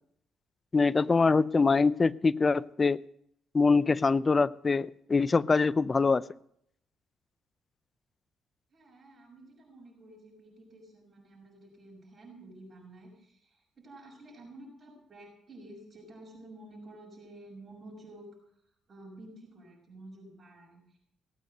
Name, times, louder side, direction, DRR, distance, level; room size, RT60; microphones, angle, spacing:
voice 1, 0.7-3.0 3.5-6.3, left 4 dB, 30° left, 0.5 m, -24 dB
voice 2, 8.7-18.3 18.9-21.0, right 1 dB, 35° right, 6.4 m, -51 dB
17.5 x 8.5 x 7.8 m
cardioid pair, 90°, 0 cm